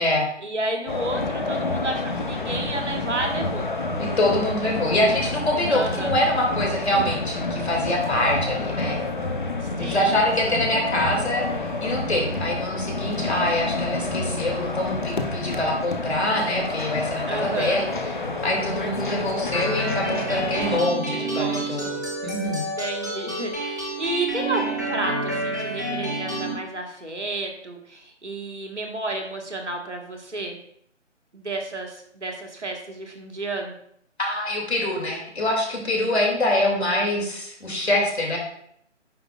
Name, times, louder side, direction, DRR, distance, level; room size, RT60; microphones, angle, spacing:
voice 1, 0.4-3.7 5.7-6.1 9.8-10.2 17.3-17.8 21.2-22.0 22.5-30.6 31.3-33.7, right 2 dB, 70° right, 3 dB, 1.6 m, -31 dB
sound 1, 0.9-20.8, left 2 dB, 40° left, 0.8 m, -29 dB
voice 2, 4.0-9.1 9.8-11.5 11.8-17.9 18.4-22.6 34.2-38.4, left 1 dB, 60° left, 0 dB, 2.5 m, -25 dB
sound 2, 19.5-26.5, right 2 dB, 15° right, 0.6 m, -29 dB
9.4 x 5.0 x 2.4 m, 0.70 s
figure-of-eight pair, 150°, 37 cm